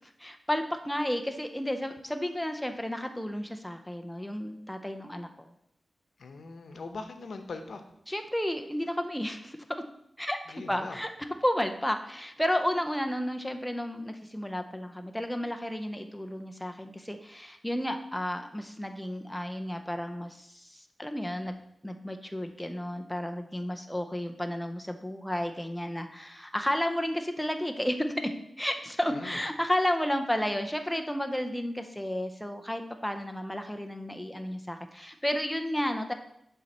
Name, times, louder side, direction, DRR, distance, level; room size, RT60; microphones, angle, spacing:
voice 1, 0.0-5.3 8.1-9.8 10.2-36.1, left 1 dB, 5° left, 6 dB, 0.5 m, -32 dB
voice 2, 6.2-7.8 10.5-11.0 29.1-29.4, left 3 dB, 75° left, 6 dB, 0.8 m, -41 dB
7.0 x 4.2 x 6.5 m, 0.77 s
wide cardioid pair, 140°, 0 cm